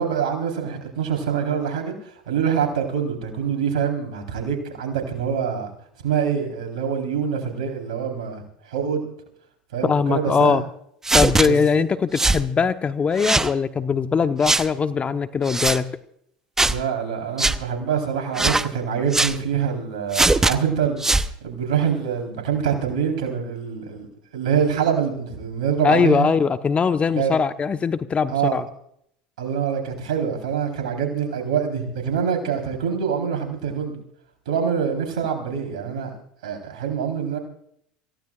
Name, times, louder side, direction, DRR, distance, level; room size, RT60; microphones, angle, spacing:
voice 1, 0.0-5.7 6.0-9.0 9.7-10.6 11.4-11.6 16.6-21.0 21.4-24.1 24.3-26.3 27.2-27.3 28.3-28.6 29.4-33.9 34.5-36.1 36.4-37.4, right 7 dB, 80° right, 3 dB, 4.0 m, -25 dB
voice 2, 9.8-10.6 11.1-15.9 25.8-28.6, left 5 dB, 30° left, 11 dB, 1.0 m, -21 dB
sound 1, 11.0-11.5 12.2-12.4 13.2-13.5 14.4-14.7 15.5-15.8 16.6-16.8 17.4-17.6 18.3-18.7 19.1-19.4 20.1-20.5 21.0-21.3, right 2 dB, 10° right, 0.8 m, -20 dB
27.0 x 16.0 x 2.5 m, 0.69 s
hypercardioid pair, 85°, 4 cm